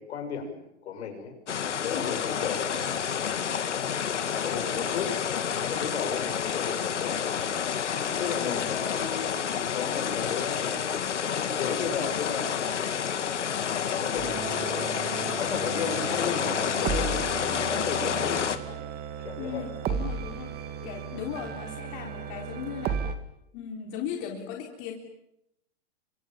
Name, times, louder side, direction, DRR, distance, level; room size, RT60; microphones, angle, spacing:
voice 1, 0.0-1.3 1.8-2.8 4.4-7.5 8.0-9.4 9.7-12.9 13.5-18.8 19.2-19.6 20.8-20.9, left 6 dB, 70° left, 6 dB, 6.6 m, -35 dB
sound 1, 1.5-18.6, left 8 dB, 85° left, 2.3 m, -29 dB
sound 2, 14.2-23.1, right 7 dB, 25° right, 2.3 m, -35 dB
voice 2, 19.4-23.0 23.5-24.9, left 8 dB, 40° left, 1 dB, 3.8 m, -37 dB
30.0 x 25.0 x 7.3 m, 0.80 s
hypercardioid pair, 130°, 35 cm